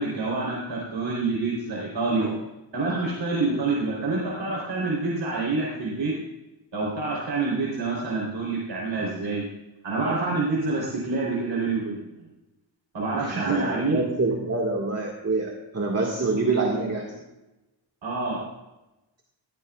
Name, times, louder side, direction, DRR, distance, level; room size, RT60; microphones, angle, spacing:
voice 1, 0.0-2.3 2.7-6.1 6.7-9.4 9.8-12.0 12.9-14.0 18.0-18.4, right 3 dB, 60° right, -4 dB, 3.9 m, -27 dB
voice 2, 13.2-17.2, right 3 dB, 30° right, -1 dB, 2.0 m, -26 dB
16.5 x 14.5 x 2.5 m, 1.0 s
wide cardioid pair, 120°, 48 cm